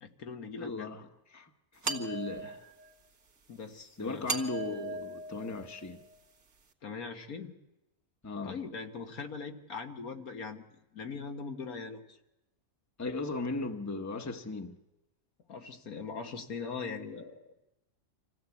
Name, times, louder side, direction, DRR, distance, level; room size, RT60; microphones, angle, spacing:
voice 1, 0.0-0.9 3.5-4.3 6.8-7.5 8.4-12.2 15.5-17.4, left 5 dB, 85° left, 1.9 m, -41 dB
voice 2, 0.6-1.0 1.3-2.7 4.0-6.0 8.2-8.6 13.0-14.7, left 3 dB, 15° left, 1.0 m, -37 dB
sound 1, 1.8-2.9 4.3-6.2, right 4 dB, 70° right, 2.1 m, -38 dB
26.5 x 15.5 x 8.3 m
omnidirectional pair, 1.5 m